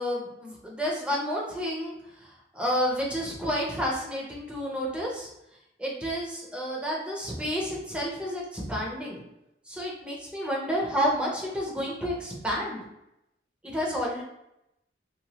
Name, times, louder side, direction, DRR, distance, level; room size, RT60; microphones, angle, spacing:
voice 1, 0.0-5.3 5.8-9.2 9.7-12.8 13.6-14.2, equal, 5° right, -3 dB, 0.5 m, -30 dB
2.9 x 2.2 x 2.8 m, 0.85 s
head